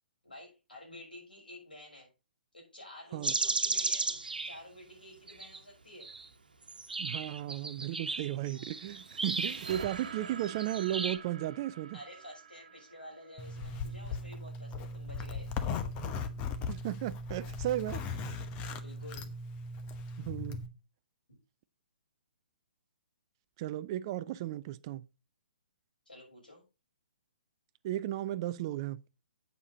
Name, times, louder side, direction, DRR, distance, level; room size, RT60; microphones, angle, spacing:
voice 1, 0.2-2.1 2.5-6.1 11.9-15.5 18.8-19.3 26.1-26.6, left 1 dB, 80° left, 6.2 m, -51 dB
sound 1, 3.2-4.6 5.3-5.6 6.0-6.3 6.7-11.2, right 3 dB, 70° right, 1.2 m, -35 dB
voice 2, 7.0-12.0 16.0-16.2 16.7-18.0 20.2-20.6 23.6-25.0 27.8-29.0, right 13 dB, 30° right, 0.4 m, -35 dB
sound 2, 8.6-13.8, right 6 dB, 50° right, 1.4 m, -47 dB
Zipper (clothing), 13.4-20.7, left 4 dB, 25° left, 1.0 m, -38 dB
8.3 x 7.2 x 4.0 m
figure-of-eight pair, 125°, 5 cm